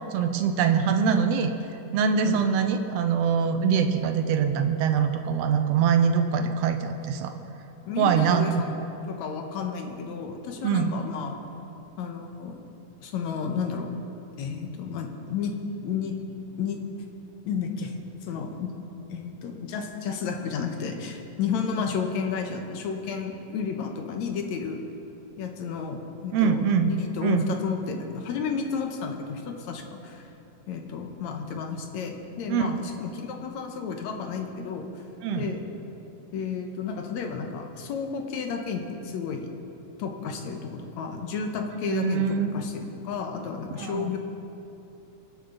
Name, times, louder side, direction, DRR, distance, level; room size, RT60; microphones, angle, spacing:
voice 1, 0.1-1.5 1.9-7.3 8.0-8.6 10.6-10.9 26.3-26.9 27.2-27.4 32.5-32.8 35.2-35.5 41.8-42.5 43.8-44.1, right 6 dB, 75° right, 7 dB, 1.6 m, -23 dB
voice 2, 7.9-8.7 9.1-11.4 12.0-12.6 13.0-13.9 14.4-15.5 15.8-16.2 16.6-16.8 17.5-17.9 18.2-18.7 19.1-24.8 25.4-30.3 30.7-35.0 35.4-35.6 36.3-39.5 40.0-44.2, left 6 dB, 70° left, 4 dB, 2.2 m, -32 dB
24.5 x 9.7 x 3.9 m, 2.9 s
omnidirectional pair, 3.6 m